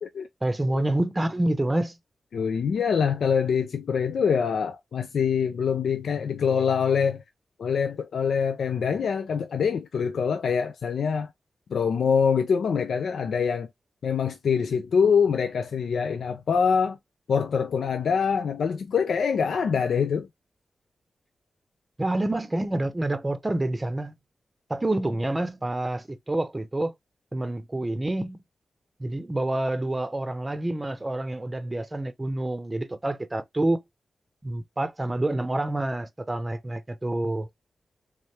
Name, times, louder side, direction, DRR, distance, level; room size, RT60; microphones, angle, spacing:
voice 1, 0.4-2.0 22.0-24.2 24.7-26.9 27.3-28.4 29.0-33.8 34.4-37.5, right 1 dB, 25° right, 0.6 m, -27 dB
voice 2, 2.3-7.2 7.6-11.3 11.7-13.7 14.0-17.0 17.3-20.3, left 6 dB, 85° left, 0.5 m, -24 dB
3.6 x 3.2 x 2.8 m
cardioid pair, 70°, 0 cm